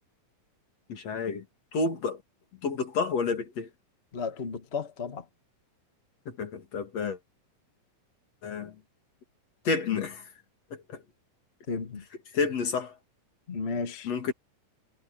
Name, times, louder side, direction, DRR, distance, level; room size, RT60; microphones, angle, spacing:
voice 1, 0.9-1.4 1.7-2.2 2.6-3.7 6.3-7.2 8.4-8.8 9.7-10.3 10.7-11.0 12.3-13.0 14.0-14.3, left 4 dB, 50° left, 3.5 m, -30 dB
voice 2, 4.1-5.3 11.7-12.0 13.5-14.1, left 4 dB, 35° left, 1.0 m, -33 dB
omnidirectional pair, 3.8 m